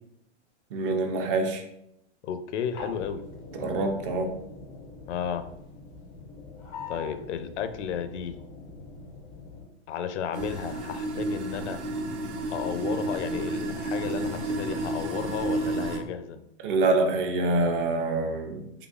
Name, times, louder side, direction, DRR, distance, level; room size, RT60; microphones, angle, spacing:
voice 1, 0.7-1.6 3.5-4.3 16.6-18.6, right 2 dB, 50° right, 3 dB, 0.7 m, -25 dB
voice 2, 2.2-3.2 3.6-3.8 5.1-5.5 6.9-8.4 9.9-11.8 12.5-16.4, left 8 dB, 80° left, 10 dB, 0.5 m, -33 dB
sound 1, 2.7-9.6, left 3 dB, 15° left, 0.3 m, -44 dB
sound 2, 10.3-16.0, right 2 dB, 90° right, 1.0 m, -31 dB
3.9 x 3.2 x 2.4 m, 0.77 s
supercardioid pair, 160°, 34 cm